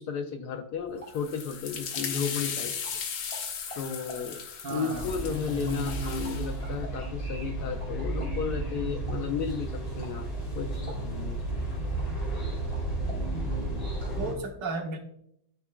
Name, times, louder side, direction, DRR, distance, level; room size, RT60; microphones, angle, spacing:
voice 1, 0.0-2.7 3.7-4.4 4.7-11.7, left 6 dB, 70° left, 6 dB, 1.0 m, -34 dB
sound 1, 0.7-14.3, equal, 20° left, 2.0 m, -50 dB
sound 2, 1.1-6.5, left 6 dB, 90° left, 1.7 m, -37 dB
voice 2, 4.6-5.1 13.3-13.5 14.2-15.0, right 2 dB, 70° right, 3 dB, 1.7 m, -34 dB
sound 3, 4.9-14.3, right 2 dB, 40° left, 2.7 m, -33 dB
12.5 x 4.5 x 2.2 m, 0.71 s
omnidirectional pair, 2.1 m